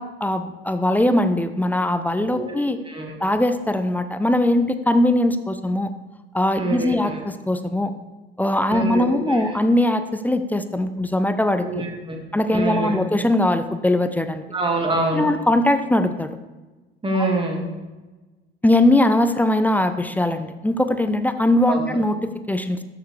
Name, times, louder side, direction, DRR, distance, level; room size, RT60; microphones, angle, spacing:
voice 1, 0.0-2.8 3.2-5.9 6.3-7.9 8.4-11.8 12.3-14.4 15.1-16.3 17.1-17.3 18.6-22.8, left 1 dB, 5° left, 9 dB, 0.5 m, -20 dB
voice 2, 2.9-3.2 6.6-7.2 8.7-9.4 11.7-12.2 12.5-13.0 14.5-15.3 17.0-17.7 21.7-22.0, right 2 dB, 20° right, 1 dB, 2.1 m, -25 dB
12.0 x 6.8 x 3.3 m, 1.2 s
figure-of-eight pair, 60°, 29 cm